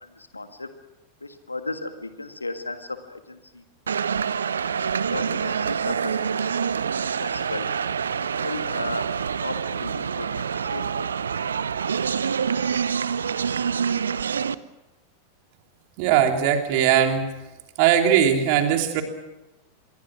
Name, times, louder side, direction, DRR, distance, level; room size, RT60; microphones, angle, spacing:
voice 1, 0.0-0.7 1.2-3.6 5.1-6.4 7.0-7.7 8.2-9.1 9.4-11.1 11.4-11.5, left 2 dB, 80° left, 8 dB, 1.8 m, -35 dB
sound 1, 3.9-14.5, right 6 dB, 70° right, 0.7 m, -26 dB
voice 2, 16.0-17.3 17.8-19.0, right 9 dB, 45° right, 4 dB, 3.3 m, -19 dB
26.5 x 22.5 x 6.3 m, 0.97 s
figure-of-eight pair, 90°, 0 cm